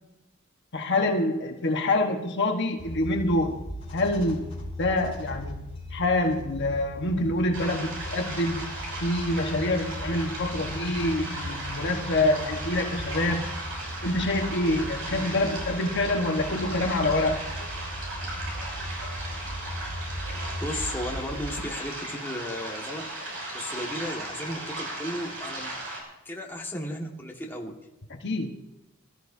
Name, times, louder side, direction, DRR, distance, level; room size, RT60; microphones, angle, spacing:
voice 1, 0.7-3.6 3.9-4.5 4.8-5.6 5.9-8.7 9.0-13.5 14.0-17.4 28.2-28.5, left 2 dB, 55° left, 3 dB, 1.4 m, -26 dB
sound 1, 2.8-21.6, equal, 30° left, 3.7 m, -38 dB
sound 2, 7.5-26.0, right 1 dB, 65° right, 6.2 m, -36 dB
voice 2, 20.6-25.7 26.3-27.8, left 1 dB, 10° left, -1 dB, 1.8 m, -35 dB
22.5 x 14.0 x 2.8 m, 0.95 s
head